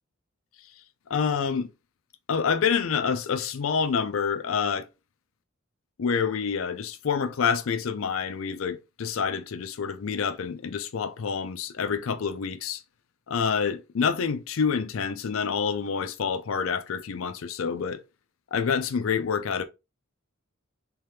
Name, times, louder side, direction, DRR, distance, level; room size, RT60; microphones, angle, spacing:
voice 1, 1.1-1.7 2.3-4.9 6.0-12.8 13.3-18.0 18.5-19.6, left 6 dB, 70° left, 0.5 m, -27 dB
3.7 x 3.0 x 3.3 m
head